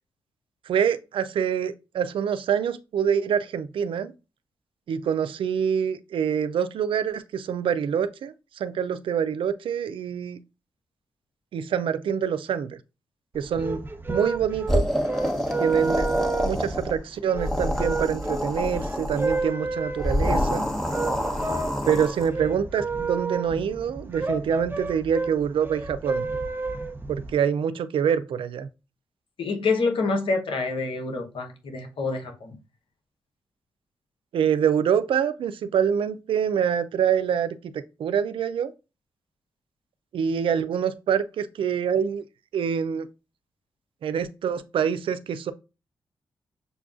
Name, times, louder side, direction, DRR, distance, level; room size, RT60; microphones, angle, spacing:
voice 1, 0.7-4.1 4.9-10.4 11.5-12.8 13.3-13.8 14.1-14.9 15.6-16.1 16.4-20.7 21.9-26.3 27.1-28.7 34.3-38.7 40.1-42.2 42.5-43.1 44.0-45.5, right 8 dB, 70° right, 0.4 m, -26 dB
sound 1, 13.3-27.3, right 3 dB, 25° right, 0.8 m, -31 dB
sound 2, 14.7-17.0 17.3-19.4 20.0-22.3, equal, 5° left, 1.0 m, -27 dB
voice 2, 29.4-32.6, left 3 dB, 70° left, 1.0 m, -27 dB
6.6 x 2.3 x 2.5 m
supercardioid pair, 45°, 9 cm